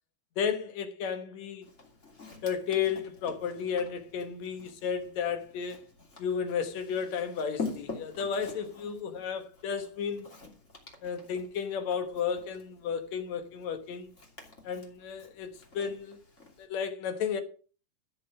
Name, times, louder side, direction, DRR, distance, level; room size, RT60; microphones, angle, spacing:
voice 1, 0.4-1.7 2.4-5.8 6.2-10.3 11.0-14.1 14.6-16.2 16.6-17.4, left 7 dB, 60° left, 2.3 m, -33 dB
Walk footsteps, 1.6-16.7, left 3 dB, 20° left, 2.7 m, -46 dB
14.0 x 7.0 x 6.0 m
omnidirectional pair, 4.1 m